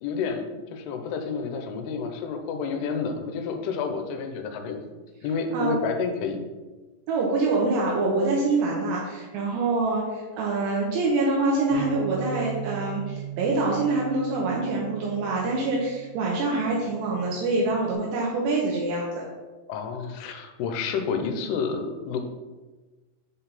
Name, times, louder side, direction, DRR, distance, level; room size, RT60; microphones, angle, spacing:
voice 1, 0.0-4.8 5.2-6.4 19.7-22.2, left 5 dB, 85° left, 6 dB, 2.7 m, -30 dB
voice 2, 7.1-19.2, right 3 dB, 80° right, -3 dB, 3.0 m, -25 dB
Bass guitar, 11.7-16.1 16.8-17.9, right 11 dB, 60° right, 3.0 m, -38 dB
7.3 x 4.0 x 4.1 m, 1.2 s
omnidirectional pair, 4.8 m